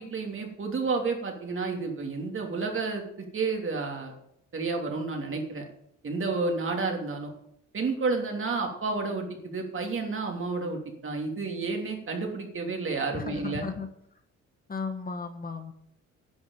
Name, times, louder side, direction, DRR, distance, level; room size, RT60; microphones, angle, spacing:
voice 1, 0.0-4.2 4.5-5.6 6.0-7.3 7.7-13.7, right 4 dB, 45° right, 2 dB, 3.2 m, -31 dB
voice 2, 13.1-13.9 14.7-15.7, left 4 dB, 30° left, 7 dB, 1.4 m, -35 dB
10.5 x 6.3 x 8.8 m, 0.73 s
cardioid pair, 90°, 30 cm